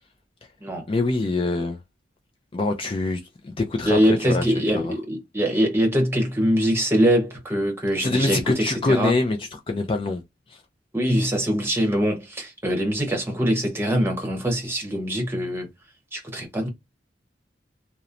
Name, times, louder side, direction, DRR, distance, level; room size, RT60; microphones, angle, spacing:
voice 1, 0.9-1.8 2.5-4.4 4.7-4.9 8.0-10.2, left 2 dB, 30° left, 0.4 m, -24 dB
voice 2, 3.8-9.1 10.9-15.7 16.1-16.7, equal, 15° right, 0.9 m, -23 dB
2.9 x 2.0 x 2.5 m
head